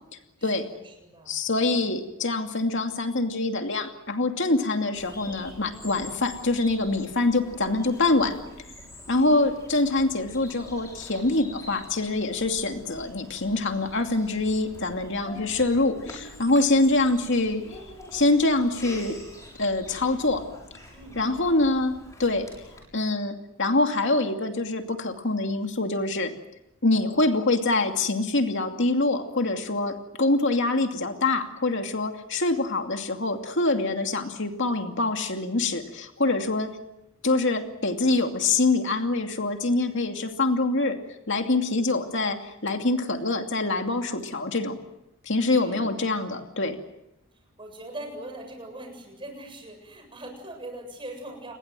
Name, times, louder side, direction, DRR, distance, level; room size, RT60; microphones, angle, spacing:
voice 1, 0.4-1.9 9.0-9.4 15.2-15.5 20.9-21.5 45.6-45.9 47.6-51.5, right 1 dB, 25° right, 4 dB, 7.5 m, -42 dB
voice 2, 1.3-8.4 9.1-17.8 18.1-19.2 19.6-20.4 21.2-21.9 22.2-22.5 22.9-26.3 26.8-36.7 37.2-41.0 41.3-44.8 45.3-46.8, left 2 dB, 55° left, 5 dB, 2.6 m, -25 dB
Bird vocalization bird call bird song, 4.9-22.8, left 1 dB, 15° left, 6.8 m, -46 dB
29.5 x 22.0 x 7.7 m, 0.88 s
head